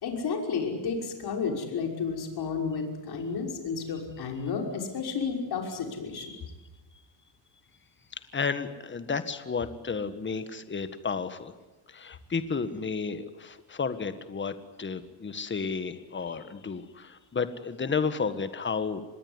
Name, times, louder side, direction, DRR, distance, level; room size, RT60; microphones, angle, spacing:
voice 1, 0.0-6.3 16.3-16.4, left 5 dB, 55° left, 3 dB, 5.9 m, -32 dB
voice 2, 8.3-11.5 11.9-19.0, left 5 dB, 25° left, 11 dB, 1.7 m, -32 dB
26.0 x 20.5 x 9.8 m, 1.1 s
cardioid pair, 135°, 46 cm